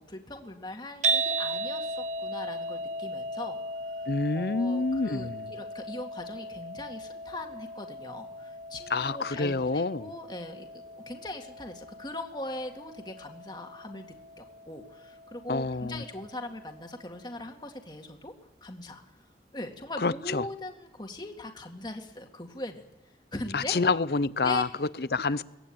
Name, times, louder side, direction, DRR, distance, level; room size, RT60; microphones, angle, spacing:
voice 1, 0.0-10.7 11.0-14.1 14.4-18.3 18.6-19.0 19.5-22.8 23.3-23.8 24.4-24.6 25.3-25.4, left 1 dB, 25° left, 2.0 m, -40 dB
sound 1, 1.0-17.3, right 2 dB, 40° right, 1.0 m, -37 dB
voice 2, 4.1-5.5 8.9-10.1 15.5-16.0 20.0-20.4 23.5-25.4, left 3 dB, 60° left, 0.7 m, -28 dB
22.5 x 17.5 x 8.8 m
head